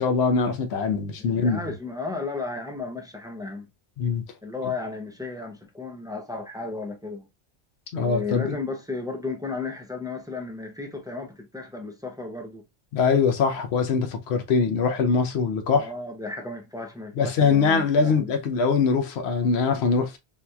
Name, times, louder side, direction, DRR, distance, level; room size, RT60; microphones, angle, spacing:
voice 1, 0.0-1.6 4.0-4.2 7.9-8.6 12.9-15.9 17.2-20.2, left 5 dB, 85° left, 0.9 m, -22 dB
voice 2, 1.2-3.7 4.4-7.3 7.9-12.6 15.8-18.3, left 3 dB, 5° right, 0.4 m, -34 dB
3.7 x 2.8 x 2.2 m
omnidirectional pair, 1.1 m